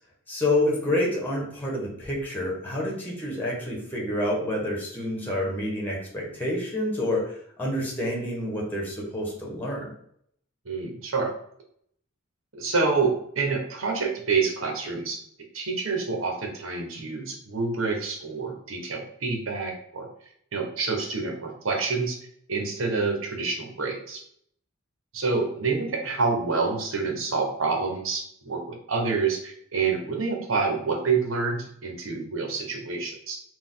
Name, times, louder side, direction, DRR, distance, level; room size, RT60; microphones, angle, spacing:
voice 1, 0.3-7.3 7.6-9.8, left 1 dB, 10° left, -3 dB, 1.2 m, -28 dB
voice 2, 10.6-11.3 12.5-15.2 15.5-20.1 20.5-22.2 22.5-24.2 25.1-33.4, right 4 dB, 85° right, 2 dB, 1.0 m, -27 dB
4.2 x 2.4 x 3.8 m, 0.68 s
head